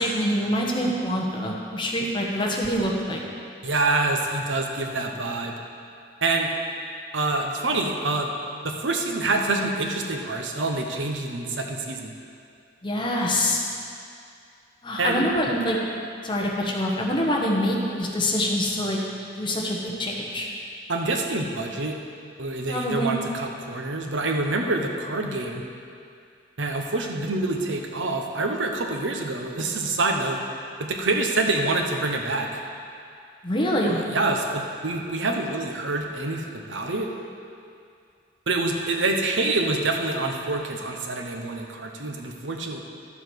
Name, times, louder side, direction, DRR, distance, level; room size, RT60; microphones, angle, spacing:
voice 1, 0.0-3.2 12.8-13.6 14.8-15.8 16.2-19.0 19.3-20.5 22.7-23.1 33.4-34.0, equal, 25° left, -2 dB, 1.2 m, -25 dB
voice 2, 3.6-5.5 6.2-6.5 7.1-8.3 8.6-12.1 15.0-15.2 20.9-22.0 22.4-25.6 26.6-30.4 30.8-32.5 33.9-37.1 38.5-42.8, right 2 dB, 90° right, 2 dB, 1.0 m, -26 dB
12.0 x 7.1 x 4.7 m, 2.4 s
head